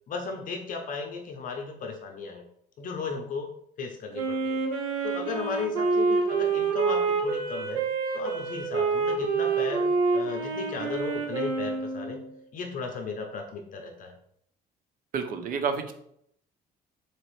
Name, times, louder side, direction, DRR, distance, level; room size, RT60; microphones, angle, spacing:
voice 1, 0.1-2.4 2.8-3.5 3.8-4.6 5.0-7.8 8.1-12.2 12.5-14.1, left 4 dB, 50° left, 3 dB, 0.5 m, -35 dB
Wind instrument woodwind instrument, 4.1-12.3, right 4 dB, 90° right, 1.0 m, -27 dB
voice 2, 15.1-15.9, right 6 dB, 55° right, 7 dB, 0.6 m, -29 dB
4.0 x 2.9 x 3.0 m, 0.70 s
cardioid pair, 110°, 17 cm